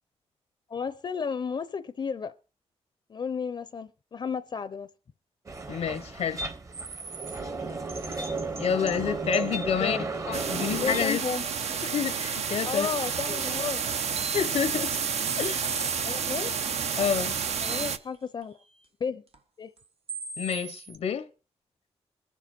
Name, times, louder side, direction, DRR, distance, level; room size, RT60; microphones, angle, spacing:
voice 1, 0.7-2.3 3.1-4.9 9.7-10.1 10.8-11.4 12.7-13.8 16.0-16.5 17.6-18.6 19.0-19.2 19.6-19.7, left 5 dB, 45° left, 0.5 m, -33 dB
sound 1, 5.5-11.1, right 3 dB, 30° right, 0.9 m, -34 dB
voice 2, 5.7-6.4 8.6-10.0 10.3-11.2 11.8-12.9 13.3-13.4 14.3-15.0 15.4-15.7 17.0-17.4 20.4-21.3, left 7 dB, 80° left, 0.8 m, -28 dB
sound 2, 6.7-9.0 9.3-9.6 10.1-10.2 10.6-10.7 11.1-11.2 13.6-13.7 14.0-16.3 17.0-18.2 18.4-18.5 19.3-19.4 19.8-19.9 20.1-21.0, right 4 dB, 60° right, 1.3 m, -40 dB
sound 3, 10.3-18.0, right 6 dB, 75° right, 0.9 m, -30 dB
22.0 x 7.5 x 4.4 m
wide cardioid pair, 135°, 11 cm